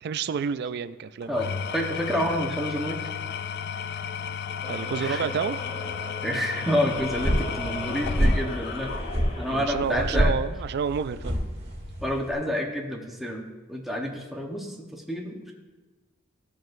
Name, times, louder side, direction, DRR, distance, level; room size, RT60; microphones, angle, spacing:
voice 1, 0.0-1.3 4.7-5.6 9.5-11.4, right 6 dB, 55° right, 13 dB, 0.3 m, -29 dB
Engine / Tools, 1.2-9.5, left 7 dB, 55° left, 0.3 m, -34 dB
voice 2, 1.3-3.0 5.0-5.2 6.2-8.9 9.4-10.3 12.0-15.5, equal, ahead, 0 dB, 1.0 m, -29 dB
sound 1, 4.6-9.6, left 1 dB, 30° left, 1.0 m, -39 dB
sound 2, 6.9-12.3, equal, 35° right, 1.6 m, -27 dB
14.0 x 6.2 x 2.6 m, 1.2 s
head